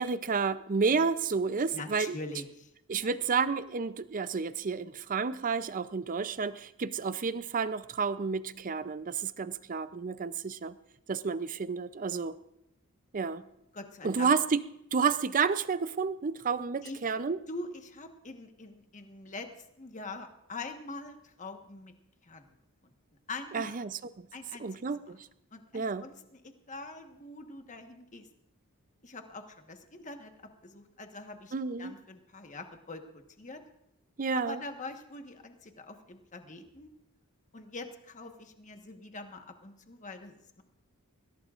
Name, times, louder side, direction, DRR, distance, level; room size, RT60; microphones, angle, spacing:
voice 1, 0.0-2.2 2.9-10.8 11.1-12.4 13.1-13.4 14.0-14.6 14.9-17.4 23.5-24.3 24.6-25.3 25.7-26.0 31.5-31.9 34.2-34.6, right 5 dB, 35° right, 14 dB, 0.5 m, -30 dB
voice 2, 1.7-2.7 13.7-14.3 16.8-17.0 17.5-19.5 19.8-21.9 22.2-22.5 22.8-22.9 23.3-23.8 24.3-24.8 25.5-28.3 29.0-30.3 30.6-33.6 34.3-36.9 37.5-40.6, left 3 dB, 35° left, 5 dB, 1.3 m, -44 dB
21.5 x 16.5 x 2.5 m, 0.82 s
head